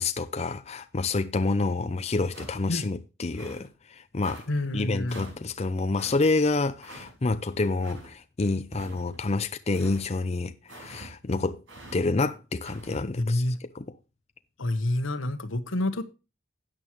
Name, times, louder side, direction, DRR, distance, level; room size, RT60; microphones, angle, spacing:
voice 1, 0.0-4.4 4.7-11.6 11.9-13.4 13.7-13.9, left 3 dB, 35° left, 0.5 m, -28 dB
sound 1, 2.3-2.8 3.3-3.7 4.2-4.5 5.1-5.4 6.0-6.2 6.8-7.1 7.8-8.1 8.7-9.2 9.7-10.0 10.7-11.1 11.7-12.0 12.6-13.0, right 1 dB, 85° right, 5.6 m, -45 dB
voice 2, 4.5-5.2 13.2-13.6 14.6-16.0, left 1 dB, 90° left, 1.2 m, -28 dB
13.5 x 8.8 x 3.1 m
head